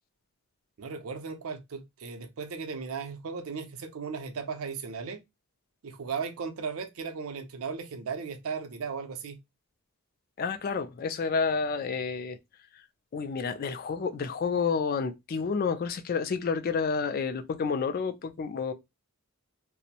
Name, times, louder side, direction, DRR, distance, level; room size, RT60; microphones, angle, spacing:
voice 1, 0.8-5.2 5.8-9.4, right 5 dB, 70° right, 0.5 m, -36 dB
voice 2, 10.4-12.4 13.1-18.7, left 5 dB, 45° left, 0.3 m, -30 dB
2.5 x 2.0 x 2.7 m
head